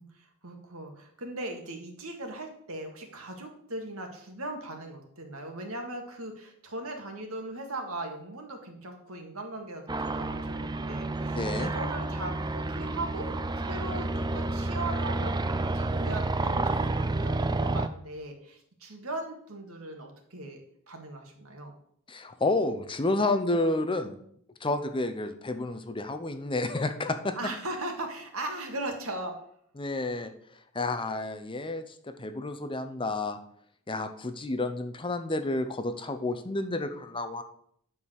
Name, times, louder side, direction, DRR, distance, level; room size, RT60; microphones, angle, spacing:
voice 1, 0.0-15.3 15.6-21.7 27.4-29.4, right 2 dB, 75° right, 3 dB, 2.0 m, -39 dB
sound 1, 9.9-17.9, right 2 dB, 20° right, 0.4 m, -30 dB
voice 2, 11.3-11.7 22.1-24.2 24.6-27.3 29.8-30.3 30.7-33.4 33.9-37.4, left 2 dB, 25° left, 9 dB, 0.7 m, -30 dB
9.8 x 5.3 x 6.4 m, 0.67 s
head